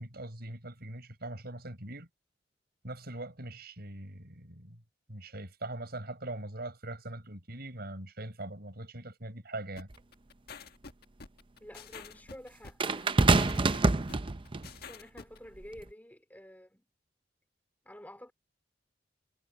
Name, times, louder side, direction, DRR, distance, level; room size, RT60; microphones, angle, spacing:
voice 1, 0.0-2.1 2.8-4.8 5.1-9.9, right 2 dB, 60° right, 6.8 m, -42 dB
sound 1, 9.8-15.4, left 5 dB, 60° left, 1.5 m, -48 dB
sound 2, 9.9-10.0 12.8-14.7 15.6-15.8, right 3 dB, 30° right, 0.6 m, -26 dB
voice 2, 11.6-14.0 14.8-16.8 17.8-18.3, equal, 10° left, 3.8 m, -50 dB
head